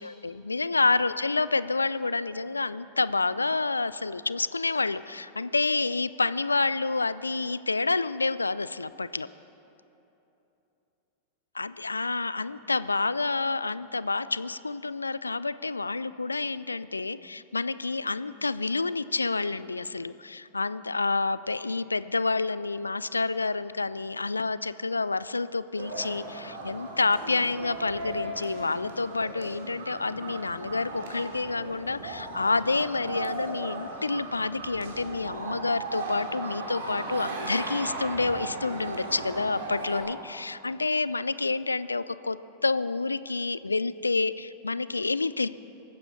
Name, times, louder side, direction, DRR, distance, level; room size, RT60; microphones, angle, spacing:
voice 1, 0.0-9.3 11.5-42.4 42.6-45.5, left 3 dB, 80° left, 16 dB, 0.3 m, -28 dB
sound 1, 25.8-40.0, right 2 dB, 60° right, 2.4 m, -37 dB
23.5 x 9.8 x 4.1 m, 3.0 s
figure-of-eight pair, 90°, 0 cm